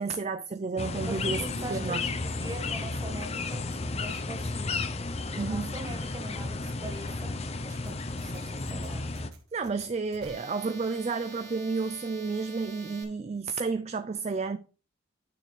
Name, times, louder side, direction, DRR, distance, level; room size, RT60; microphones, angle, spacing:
voice 1, 0.0-1.4 1.7-2.0 5.4-5.7 9.5-14.6, right 4 dB, 30° right, 0.3 m, -31 dB
sound 1, 0.8-9.3, left 3 dB, 30° left, 0.6 m, -33 dB
voice 2, 1.1-4.8 5.3-7.3 7.6-9.1, right 1 dB, 15° right, 1.6 m, -42 dB
sound 2, 7.9-13.0, right 4 dB, 50° right, 1.7 m, -48 dB
9.2 x 6.5 x 3.2 m
head